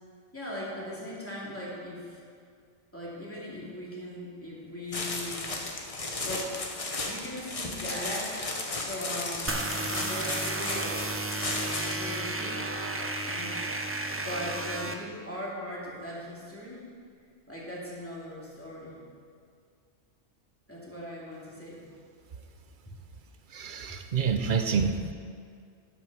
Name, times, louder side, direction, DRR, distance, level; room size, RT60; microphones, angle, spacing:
voice 1, 0.3-2.2 2.9-5.5 6.2-6.5 6.9-8.5 8.8-11.2 12.0-12.6 13.2-13.6 14.1-16.9 17.5-19.1 20.7-21.9, equal, 10° left, -7 dB, 2.4 m, -39 dB
sound 1, 4.9-12.1, left 2 dB, 35° left, 0.9 m, -35 dB
sound 2, 9.5-14.9, right 2 dB, 20° right, 0.4 m, -33 dB
voice 2, 23.5-25.1, right 6 dB, 55° right, 8 dB, 0.7 m, -28 dB
11.5 x 6.1 x 6.0 m, 2.2 s
omnidirectional pair, 1.1 m